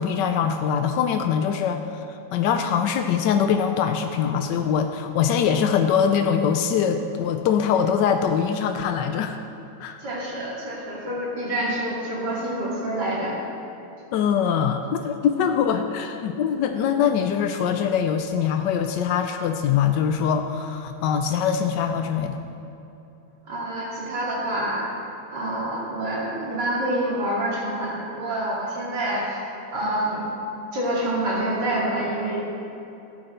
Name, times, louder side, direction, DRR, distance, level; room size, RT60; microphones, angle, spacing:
voice 1, 0.0-2.0 2.3-9.4 9.8-10.0 14.1-22.4, left 7 dB, 90° left, 6 dB, 1.3 m, -23 dB
voice 2, 10.0-13.4 23.5-24.9 25.3-30.2 30.7-32.4, right 1 dB, 80° right, -5 dB, 3.2 m, -27 dB
13.5 x 9.0 x 4.4 m, 2.9 s
omnidirectional pair, 1.9 m